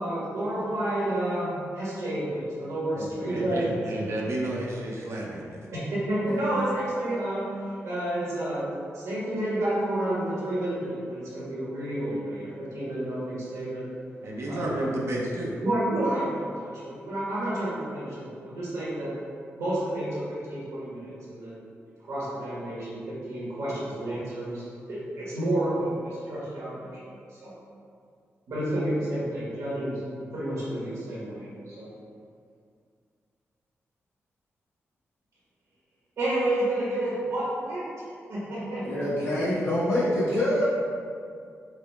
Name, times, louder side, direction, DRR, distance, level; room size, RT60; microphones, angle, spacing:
voice 1, 0.0-3.8 5.9-7.5 7.8-8.7 8.9-13.9 14.5-14.7 15.6-19.1 19.6-21.6 22.0-27.0 27.4-27.5 28.5-31.9 36.2-37.8 38.3-39.0, right 1 dB, 80° right, -8 dB, 1.1 m, -30 dB
voice 2, 2.9-5.6 14.2-15.5, right 1 dB, 65° right, -3 dB, 0.5 m, -31 dB
voice 3, 38.8-40.7, left 1 dB, 55° left, -10 dB, 1.3 m, -25 dB
4.6 x 2.1 x 2.2 m, 2.3 s
cardioid pair, 85°, 5 cm